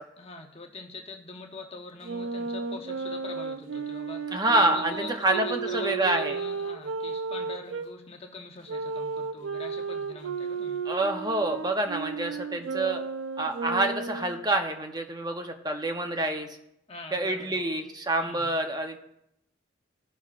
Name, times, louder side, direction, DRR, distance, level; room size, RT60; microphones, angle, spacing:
voice 1, 0.2-10.8 16.9-17.8 18.2-18.5, left 3 dB, 30° left, 1 dB, 1.0 m, -43 dB
Wind instrument woodwind instrument, 2.0-7.9 8.7-14.4, right 4 dB, 85° right, 0.5 m, -34 dB
voice 2, 4.3-6.4 10.9-13.0 13.4-16.5 17.1-19.0, right 2 dB, 20° right, 5 dB, 0.7 m, -27 dB
15.5 x 5.8 x 2.5 m, 0.80 s
head